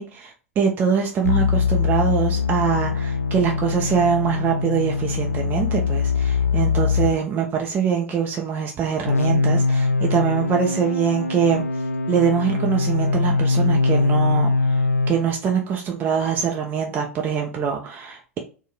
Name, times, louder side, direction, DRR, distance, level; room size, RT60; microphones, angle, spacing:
voice 1, 0.0-11.6 12.1-14.5 15.1-18.4, right 7 dB, 25° right, 1 dB, 0.6 m, -23 dB
sound 1, 1.2-7.2 9.1-15.2, left 4 dB, 75° left, 0.4 m, -22 dB
4.5 x 2.2 x 3.0 m, 0.36 s
figure-of-eight pair, 95°, 8 cm